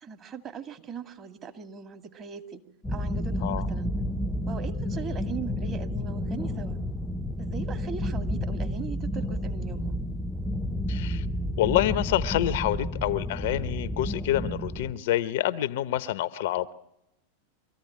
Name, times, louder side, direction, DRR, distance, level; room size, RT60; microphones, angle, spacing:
voice 1, 0.0-2.6 2.9-3.9 4.5-6.8 7.4-10.0, right 6 dB, 30° right, 2.3 m, -39 dB
sound 1, 2.8-14.9, left 1 dB, 10° left, 0.8 m, -31 dB
voice 2, 10.9-11.2 11.6-16.7, left 13 dB, 55° left, 0.8 m, -27 dB
24.5 x 14.5 x 9.8 m
figure-of-eight pair, 90°, 0 cm